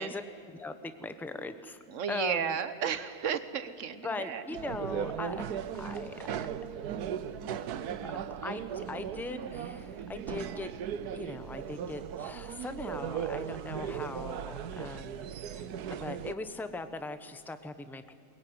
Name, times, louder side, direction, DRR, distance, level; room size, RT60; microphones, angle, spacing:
voice 1, 0.0-1.8 2.1-2.6 4.0-6.4 8.1-10.7 11.1-18.1, left 3 dB, ahead, 10 dB, 0.7 m, -40 dB
voice 2, 1.9-4.4, right 7 dB, 55° right, 12 dB, 1.3 m, -33 dB
sound 1, 4.5-16.3, right 8 dB, 75° right, 1.3 m, -37 dB
22.5 x 21.0 x 9.6 m, 2.4 s
omnidirectional pair, 1.7 m